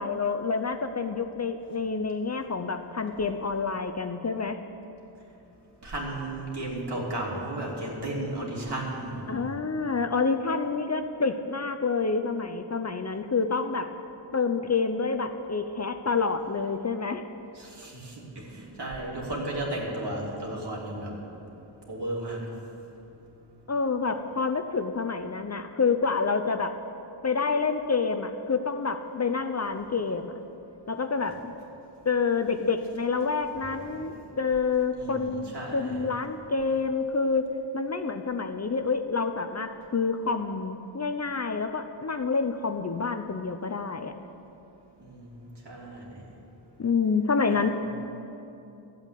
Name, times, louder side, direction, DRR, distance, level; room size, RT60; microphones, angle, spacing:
voice 1, 0.0-4.6 9.3-13.9 14.3-17.2 23.7-26.7 27.2-30.4 30.9-31.5 32.0-37.5 37.7-44.1 46.8-47.7, left 4 dB, 35° left, 8 dB, 0.6 m, -28 dB
voice 2, 5.8-9.5 17.5-21.2 21.9-22.4 33.5-34.1 34.9-36.0 45.0-46.2 47.5-47.7, right 1 dB, 60° right, -3 dB, 3.2 m, -34 dB
13.5 x 8.2 x 8.4 m, 2.8 s
wide cardioid pair, 85°, 47 cm